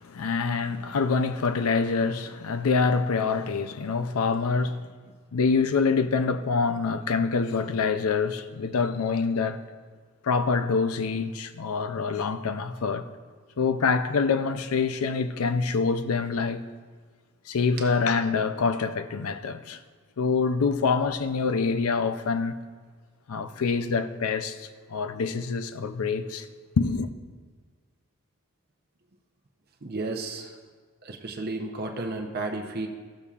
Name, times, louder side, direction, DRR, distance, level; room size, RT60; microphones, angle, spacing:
voice 1, 0.0-4.9 5.3-9.6 10.2-13.1 13.6-16.6 17.5-19.8 20.2-22.6 23.3-26.5 26.8-27.1, left 4 dB, 80° left, 0.5 m, -26 dB
voice 2, 29.8-30.5 31.0-32.9, right 2 dB, 45° right, 0.7 m, -33 dB
14.5 x 6.9 x 2.4 m
head